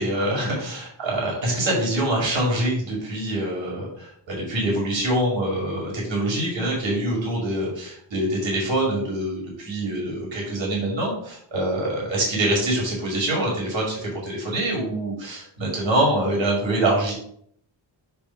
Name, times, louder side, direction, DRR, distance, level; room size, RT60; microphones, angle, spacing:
voice 1, 0.0-17.1, right 1 dB, 75° right, -3 dB, 2.3 m, -25 dB
6.9 x 2.6 x 5.6 m, 0.67 s
wide cardioid pair, 90°, 46 cm